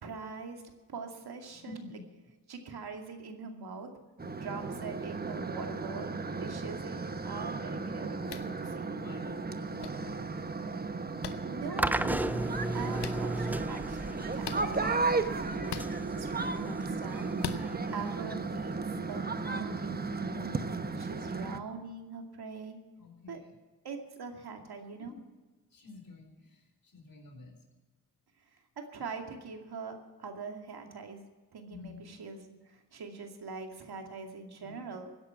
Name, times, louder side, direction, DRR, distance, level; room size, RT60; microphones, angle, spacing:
voice 1, 0.0-0.6 0.9-2.0 2.5-3.9 4.4-9.0 11.2-14.0 14.3-17.3 17.9-20.5 20.9-22.8 23.3-23.4 23.8-25.1 28.5-35.1, right 4 dB, 70° right, 4 dB, 2.4 m, -43 dB
voice 2, 1.5-2.0 4.2-4.6 8.6-10.4 21.0-21.4 23.0-23.5 25.0-25.1 25.7-27.6 31.7-32.0 34.6-34.8, left 3 dB, 55° left, 4 dB, 4.2 m, -51 dB
sound 1, 4.2-21.6, right 3 dB, 25° right, 1.0 m, -35 dB
sound 2, 8.3-8.5 9.8-9.9 11.2-11.4 13.0-13.2 14.4-14.6 15.7-15.9 17.4-17.6, left 9 dB, 80° left, 1.1 m, -38 dB
sound 3, 11.8-18.9, right 1 dB, 5° right, 0.4 m, -36 dB
17.0 x 10.5 x 5.9 m, 1.2 s
cardioid pair, 85°, 40 cm